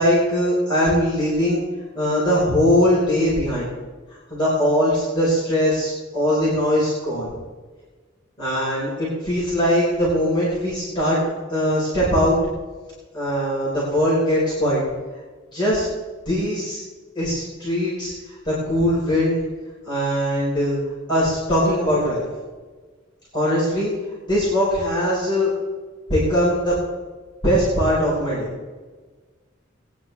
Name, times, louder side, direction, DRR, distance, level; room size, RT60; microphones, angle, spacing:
voice 1, 0.0-1.6 2.0-3.7 4.3-7.3 8.4-11.2 11.5-12.4 13.1-14.8 15.5-15.9 16.3-16.8 17.2-18.1 18.5-19.4 19.9-20.8 21.1-22.2 23.3-23.9 24.3-25.5 26.1-26.7 27.4-28.5, equal, 25° left, -9 dB, 5.2 m, -20 dB
21.0 x 10.5 x 3.6 m, 1.4 s
head